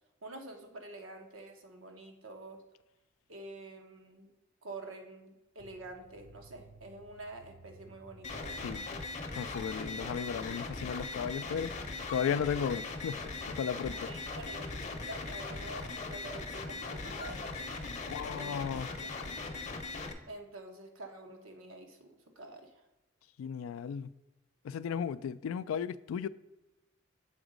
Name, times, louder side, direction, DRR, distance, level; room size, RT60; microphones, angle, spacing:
voice 1, 0.2-2.6 3.3-4.3 4.6-8.8 13.9-17.7 18.2-18.6 19.0-19.2 20.3-22.8, right 2 dB, 85° right, 1.0 m, -48 dB
sound 1, 5.6-10.7, right 3 dB, 45° right, 0.5 m, -58 dB
sound 2, 8.2-20.1, left 3 dB, 35° left, 0.7 m, -40 dB
voice 2, 9.3-11.7 12.1-14.1 18.1-18.9 23.4-24.1 24.6-26.3, left 7 dB, 85° left, 0.3 m, -35 dB
7.0 x 4.0 x 5.0 m
head